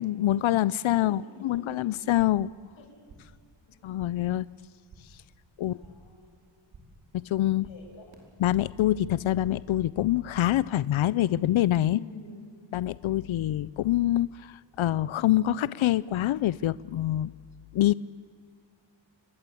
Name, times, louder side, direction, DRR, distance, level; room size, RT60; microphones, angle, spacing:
voice 1, 0.0-2.5 3.8-4.5 5.6-5.8 7.1-7.7 8.4-12.0 12.7-17.3 17.7-17.9, left 13 dB, 85° left, 19 dB, 0.6 m, -25 dB
voice 2, 0.9-1.8 2.8-2.9 3.7-3.8 5.6-6.4 7.6-8.2 11.9-12.5, left 3 dB, 70° left, 0 dB, 7.8 m, -47 dB
sound 1, 2.0-2.5 2.8-3.4 3.7-4.3 4.6-5.2 5.5-6.2 6.5-7.1 7.3-8.9 9.1-9.8 10.0-10.8, right 2 dB, 75° right, 5.1 m, -55 dB
28.5 x 21.5 x 8.5 m, 2.1 s
wide cardioid pair, 165°, 47 cm